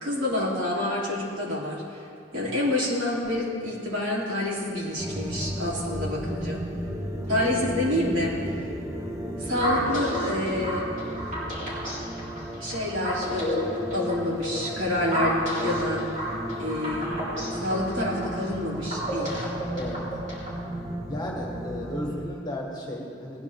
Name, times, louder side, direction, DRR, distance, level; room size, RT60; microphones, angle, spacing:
voice 1, 0.0-2.0 2.3-6.6 7.3-8.7 9.4-10.9 12.6-13.6 13.9-16.1 16.6-17.2 17.6-19.4, left 1 dB, 80° right, -5 dB, 3.1 m, -28 dB
sound 1, 5.0-22.2, right 1 dB, 15° right, 0.9 m, -34 dB
sound 2, 9.6-20.6, equal, 40° right, 3.6 m, -32 dB
voice 2, 21.1-23.4, left 1 dB, 20° left, -2 dB, 1.6 m, -34 dB
19.0 x 9.8 x 3.5 m, 2.5 s
head